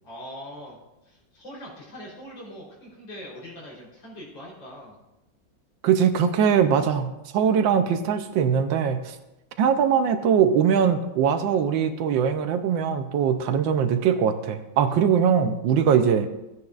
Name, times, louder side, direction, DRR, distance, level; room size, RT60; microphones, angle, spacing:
voice 1, 0.0-0.8 1.0-5.0, equal, 65° left, -4 dB, 4.4 m, -42 dB
voice 2, 5.8-9.2 9.6-16.3, right 7 dB, 75° right, 9 dB, 1.4 m, -21 dB
15.5 x 9.5 x 2.4 m, 0.96 s
omnidirectional pair, 2.1 m